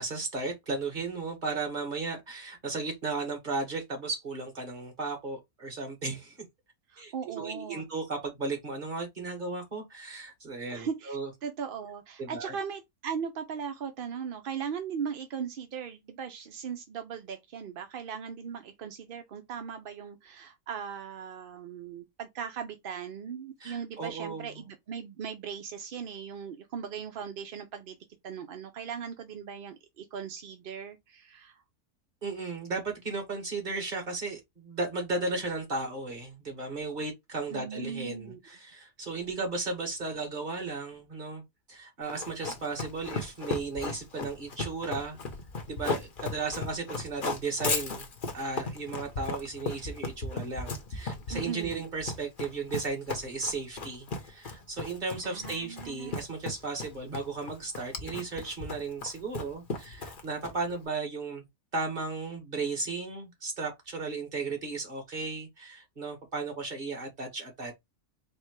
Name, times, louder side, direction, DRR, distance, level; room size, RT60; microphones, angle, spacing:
voice 1, 0.0-6.4 7.0-11.3 12.2-12.6 23.6-24.6 32.2-41.4 41.7-45.2 45.7-48.0 48.3-61.4 61.7-67.7, right 3 dB, 35° right, 1.8 m, -35 dB
voice 2, 6.9-7.9 10.7-28.0 28.2-31.6 37.5-38.4 51.3-51.8 55.2-56.2, right 7 dB, 60° right, 0.6 m, -38 dB
Run, 42.1-60.8, left 3 dB, 45° left, 0.9 m, -36 dB
4.3 x 2.1 x 4.6 m
omnidirectional pair, 1.5 m